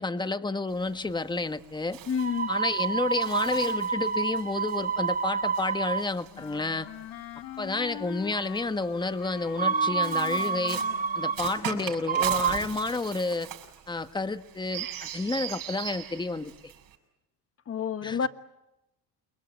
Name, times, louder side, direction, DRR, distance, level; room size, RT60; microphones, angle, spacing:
voice 1, 0.0-2.0 2.5-6.9 7.6-10.8 11.1-13.5 13.9-16.5 18.0-18.3, left 3 dB, 10° left, 1.4 m, -30 dB
Bird, 0.7-7.2 8.2-17.0, right 10 dB, 65° right, 6.7 m, -41 dB
voice 2, 2.1-2.5 17.7-18.3, left 6 dB, 40° left, 1.5 m, -28 dB
sound 1, 2.2-6.1 9.6-11.6 12.1-12.7, right 6 dB, 25° right, 1.0 m, -28 dB
Wind instrument woodwind instrument, 6.3-11.6, left 11 dB, 80° left, 2.4 m, -42 dB
29.5 x 22.5 x 8.9 m
cardioid pair, 105°, 36 cm